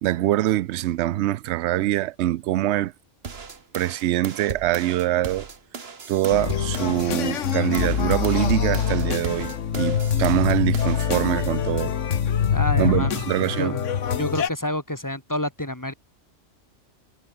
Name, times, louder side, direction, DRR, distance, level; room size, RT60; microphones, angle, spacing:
voice 1, 0.0-2.9 3.7-5.5 6.1-11.9 12.8-13.7, right 14 dB, 70° right, 0.8 m, -24 dB
sound 1, 3.2-7.1 7.5-11.1, right 5 dB, 55° right, 1.9 m, -37 dB
sound 2, 6.3-14.5, left 8 dB, 75° left, 1.4 m, -24 dB
voice 2, 12.5-13.3 13.6-13.8 14.2-15.9, left 1 dB, 15° left, 2.3 m, -28 dB
omnidirectional pair, 1.3 m